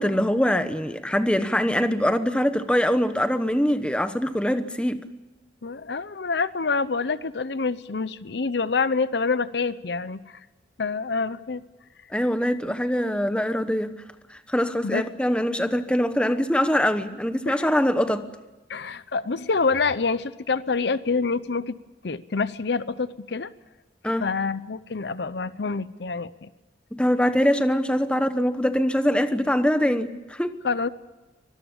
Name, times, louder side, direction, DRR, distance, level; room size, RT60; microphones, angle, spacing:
voice 1, 0.0-5.0 12.1-14.0 14.3-18.3 24.0-24.3 26.9-30.5, equal, 5° left, 1.0 m, -23 dB
voice 2, 5.6-10.4 10.8-11.6 14.8-15.0 17.5-17.7 18.7-21.8 22.0-23.5 24.2-26.5 30.6-30.9, left 4 dB, 70° left, 0.7 m, -27 dB
25.0 x 20.5 x 7.3 m
head